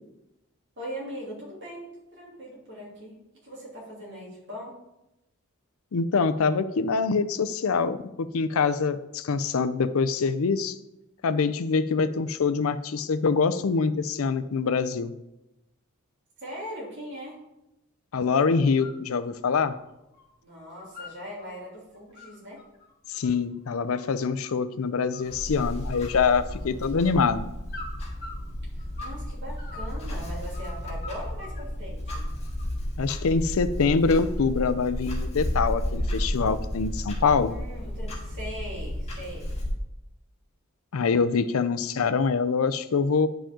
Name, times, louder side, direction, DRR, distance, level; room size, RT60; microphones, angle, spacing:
voice 1, 0.8-3.1 3.4-4.7 16.4-17.4 20.4-22.6 28.7-32.2 37.4-39.5, equal, 55° right, -4 dB, 3.1 m, -40 dB
voice 2, 5.9-10.7 11.2-15.1 18.1-19.7 23.1-27.4 33.0-37.5 40.9-43.3, left 5 dB, 70° left, 12 dB, 0.5 m, -24 dB
sound 1, 18.6-19.0 19.3-20.3 20.6-21.5 21.9-24.7 25.1-25.6 25.9-26.9 27.7-29.2 29.5-31.6 32.1-32.8, left 2 dB, 45° left, 1.3 m, -44 dB
Clock, 25.3-39.7, equal, 30° left, 2.1 m, -32 dB
10.0 x 5.0 x 3.7 m, 0.91 s
head